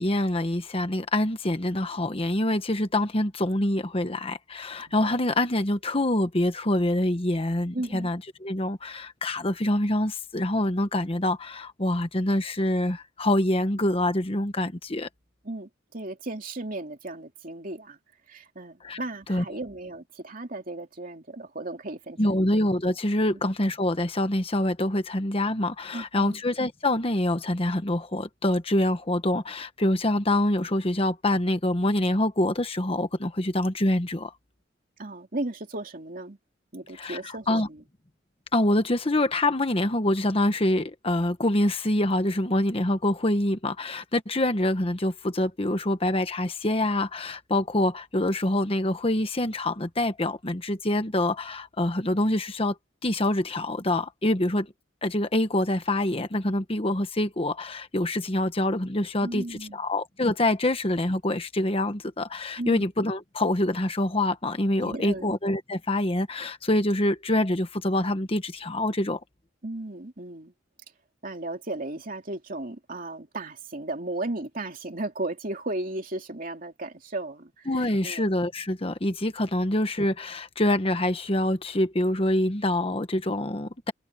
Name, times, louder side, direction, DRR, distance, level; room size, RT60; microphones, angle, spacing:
voice 1, 0.0-15.1 18.8-19.0 19.3-19.4 22.2-34.3 36.9-37.7 38.5-52.8 53.0-54.7 55.0-69.2 77.7-83.9, left 1 dB, 30° left, 1.3 m, -25 dB
voice 2, 4.9-5.3 7.7-8.1 15.4-18.0 18.3-22.4 23.3-23.4 25.9-26.4 35.0-36.4 36.7-37.8 59.2-59.8 62.6-62.8 64.8-65.3 69.6-70.5 71.2-78.2, right 2 dB, 45° right, 2.9 m, -35 dB
head